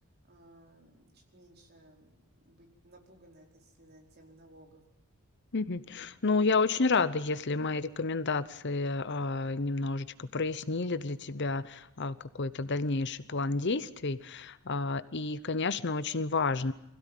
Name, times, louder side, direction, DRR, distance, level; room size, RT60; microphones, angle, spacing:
voice 1, 0.3-2.1 2.4-4.8, right 1 dB, 45° right, 1 dB, 4.9 m, -58 dB
voice 2, 5.5-16.7, left 3 dB, 50° left, 15 dB, 0.9 m, -30 dB
25.0 x 16.5 x 9.2 m, 0.82 s
head